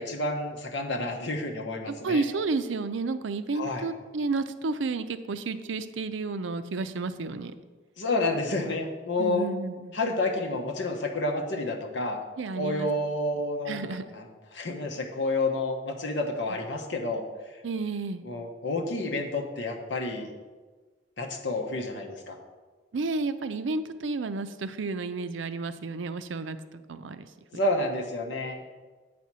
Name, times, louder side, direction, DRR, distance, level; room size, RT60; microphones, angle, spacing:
voice 1, 0.0-2.2 3.5-3.8 8.0-9.5 9.9-12.2 12.6-13.8 14.1-14.2 14.5-17.2 18.2-20.3 21.2-22.4 27.5-28.7, left 2 dB, 75° left, 2 dB, 1.1 m, -29 dB
voice 2, 1.9-7.5 9.2-10.0 12.4-12.9 13.7-14.0 17.6-18.2 22.9-27.3, right 3 dB, 85° right, 11 dB, 0.5 m, -31 dB
8.7 x 4.3 x 6.1 m, 1.3 s
head